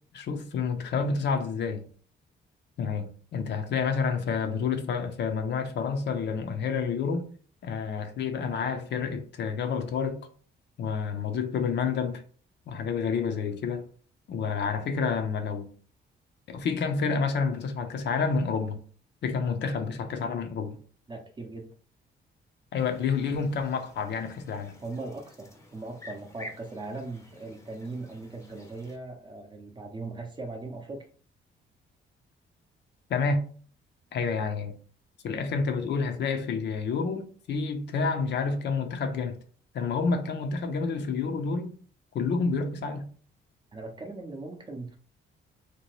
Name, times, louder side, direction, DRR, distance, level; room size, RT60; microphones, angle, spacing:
voice 1, 0.1-1.8 2.8-7.3 7.6-10.2 10.8-12.2 12.7-13.9 14.3-15.7 16.5-18.8 19.2-20.8 22.7-24.8 33.1-33.5 34.1-34.8 35.2-39.4 39.7-41.7 42.1-43.1, left 5 dB, 60° left, 0.5 m, -29 dB
voice 2, 21.1-21.7 24.8-31.1 43.7-45.0, right 3 dB, 25° right, 0.6 m, -39 dB
sound 1, 22.8-29.0, left 1 dB, 15° left, 0.6 m, -50 dB
2.8 x 2.1 x 3.0 m
cardioid pair, 90°, 20 cm